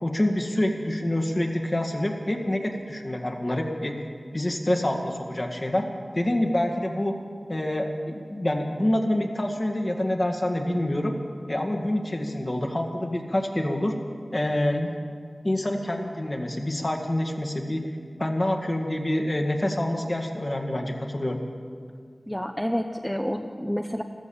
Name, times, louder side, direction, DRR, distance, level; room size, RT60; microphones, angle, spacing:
voice 1, 0.0-4.0 4.3-5.8 6.1-7.2 7.5-11.1 11.5-13.9 14.3-14.9 15.4-17.9 18.2-21.4, left 1 dB, 40° left, 2 dB, 2.0 m, -26 dB
voice 2, 22.3-24.0, equal, 5° left, 5 dB, 0.8 m, -29 dB
15.0 x 13.5 x 7.1 m, 2.1 s
wide cardioid pair, 40°, 0 cm